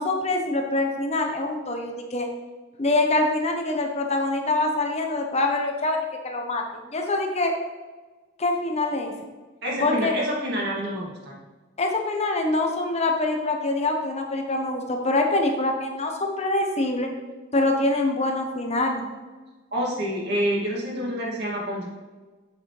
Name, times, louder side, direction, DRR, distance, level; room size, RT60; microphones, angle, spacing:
voice 1, 0.0-2.3 2.8-7.5 8.4-9.1 9.8-10.1 11.8-17.1 17.5-19.1, left 2 dB, 35° left, 3 dB, 0.9 m, -25 dB
voice 2, 9.6-11.4 19.7-21.9, equal, 55° right, -4 dB, 2.3 m, -27 dB
8.5 x 6.7 x 3.3 m, 1.3 s
head